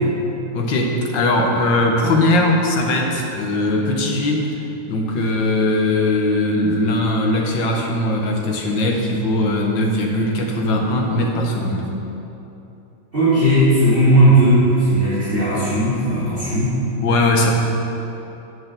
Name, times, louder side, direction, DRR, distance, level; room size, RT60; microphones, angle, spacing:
voice 1, 0.5-4.5 4.9-11.9 17.0-17.5, left 1 dB, 75° left, 1 dB, 1.9 m, -19 dB
voice 2, 13.1-16.7, right 1 dB, 30° right, -13 dB, 2.8 m, -16 dB
8.3 x 7.4 x 6.9 m, 2.9 s
omnidirectional pair, 2.0 m